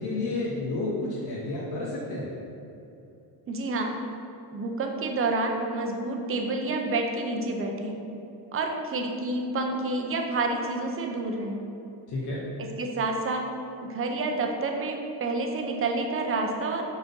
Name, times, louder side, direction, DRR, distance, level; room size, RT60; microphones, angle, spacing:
voice 1, 0.0-2.3 12.1-12.4, left 2 dB, 55° left, -7 dB, 1.2 m, -31 dB
voice 2, 3.5-3.9 4.5-8.0 8.5-11.6 12.6-13.5 13.8-16.8, right 2 dB, 30° right, 3 dB, 0.7 m, -29 dB
6.0 x 4.2 x 5.4 m, 2.8 s
cardioid pair, 150°, 45 cm